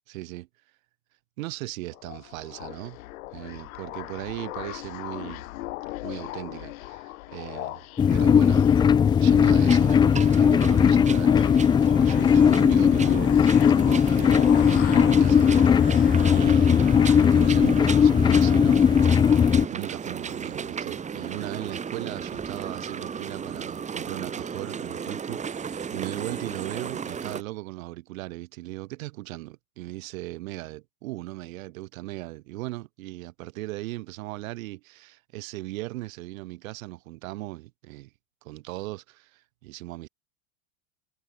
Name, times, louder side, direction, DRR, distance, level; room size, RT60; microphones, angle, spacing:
voice 1, 0.1-0.5 1.4-3.0 3.3-5.5 6.0-7.8 8.1-11.5 12.0-19.3 19.7-38.1 38.4-40.1, right 19 dB, 65° right, 3.8 m, -38 dB
sound 1, 1.9-17.2, left 18 dB, 70° left, 3.3 m, -38 dB
sound 2, 8.0-19.7, left 7 dB, 10° left, 0.5 m, -18 dB
sound 3, 9.4-27.4, right 6 dB, 15° right, 4.3 m, -35 dB
supercardioid pair, 155°, 44 cm